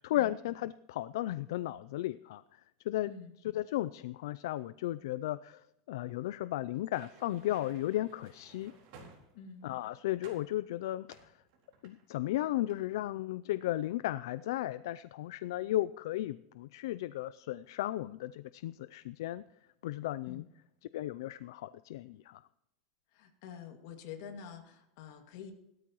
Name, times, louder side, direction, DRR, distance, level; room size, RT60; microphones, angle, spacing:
voice 1, 0.0-3.1 3.5-8.7 9.6-11.4 11.8-19.4 19.8-20.4 20.9-22.4, left 14 dB, 85° left, 16 dB, 0.4 m, -35 dB
sound 1, 6.7-9.7 10.2-10.5 11.1-12.3 12.5-12.8, right 4 dB, 55° right, 4.1 m, -57 dB
voice 2, 9.3-9.7 20.3-20.5 23.1-25.5, left 7 dB, 60° left, 4 dB, 2.2 m, -47 dB
17.0 x 13.0 x 3.1 m, 0.84 s
supercardioid pair, 165°, 2 cm